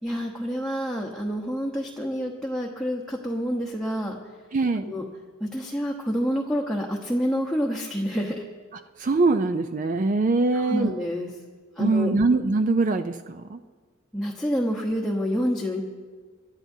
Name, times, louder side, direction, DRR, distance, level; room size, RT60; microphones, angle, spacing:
voice 1, 0.0-4.2 4.8-5.0 5.4-8.4 10.5-11.3 11.8-12.1 14.1-15.8, equal, ahead, -2 dB, 1.0 m, -28 dB
voice 2, 4.5-4.8 9.0-11.0 11.8-13.6, right 3 dB, 40° right, 8 dB, 0.4 m, -23 dB
26.5 x 12.5 x 2.7 m, 1.5 s
head